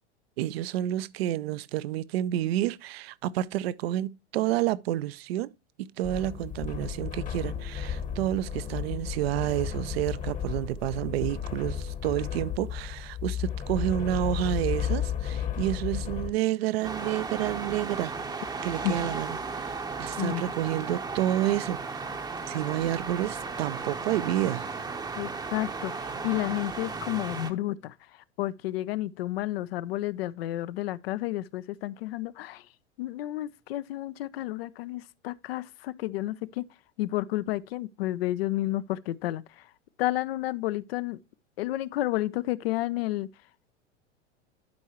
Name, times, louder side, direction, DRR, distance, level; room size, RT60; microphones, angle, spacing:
voice 1, 0.4-5.5 5.8-18.1 18.6-22.1 22.5-24.7, right 13 dB, 60° right, 0.6 m, -29 dB
sound 1, 6.0-16.3, left 8 dB, 20° left, 1.0 m, -33 dB
sound 2, 16.8-27.5, right 4 dB, 10° right, 0.8 m, -35 dB
voice 2, 25.2-32.7 33.0-36.6 37.0-39.7 40.0-41.2 41.6-43.3, left 16 dB, 60° left, 0.5 m, -31 dB
11.5 x 4.6 x 2.8 m
figure-of-eight pair, 90°, 35 cm